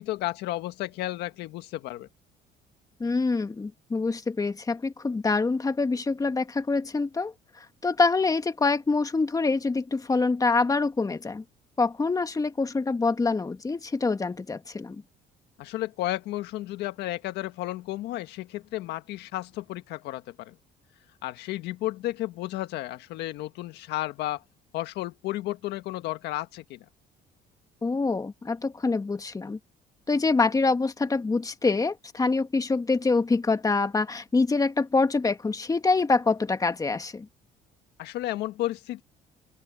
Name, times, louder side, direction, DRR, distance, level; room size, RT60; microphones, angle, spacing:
voice 1, 0.0-2.1 15.6-20.6 21.2-24.4 24.7-26.8 38.0-39.0, left 16 dB, 85° left, 1.6 m, -33 dB
voice 2, 3.0-7.3 7.8-11.4 11.8-15.0 27.8-29.6 30.1-37.3, left 3 dB, 20° left, 1.6 m, -25 dB
open air
cardioid pair, 110°, 17 cm